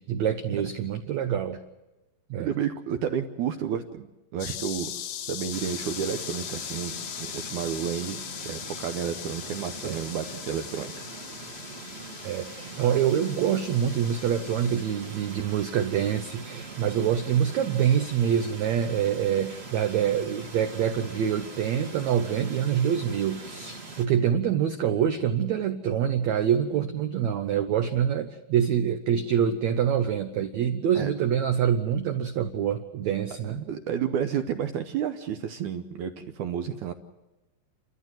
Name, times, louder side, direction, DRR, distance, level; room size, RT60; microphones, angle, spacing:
voice 1, 0.0-1.6 2.3-2.5 9.8-10.0 12.2-33.6, right 9 dB, 90° right, 9 dB, 1.6 m, -26 dB
voice 2, 2.4-4.1 4.3-4.9 5.3-10.9 30.9-31.1 33.5-36.9, right 8 dB, 75° right, 8 dB, 1.9 m, -31 dB
sound 1, 4.4-14.8, left 11 dB, 70° left, 2.1 m, -39 dB
sound 2, 5.5-24.1, right 3 dB, 25° right, 1.3 m, -42 dB
29.5 x 14.0 x 7.8 m, 1.1 s
omnidirectional pair, 4.4 m